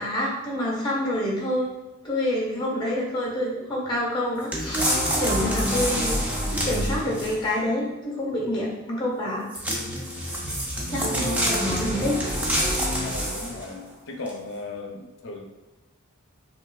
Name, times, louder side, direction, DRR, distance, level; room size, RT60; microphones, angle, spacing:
voice 1, 0.0-1.7 2.0-4.9 5.1-9.8 10.9-12.8, left 1 dB, 20° left, -3 dB, 1.2 m, -28 dB
sound 1, 4.5-7.5 9.5-13.7 14.3-14.4, equal, 5° right, 0.6 m, -26 dB
voice 2, 13.0-15.4, left 3 dB, 60° left, 1 dB, 0.6 m, -37 dB
6.1 x 2.6 x 2.3 m, 1.1 s
head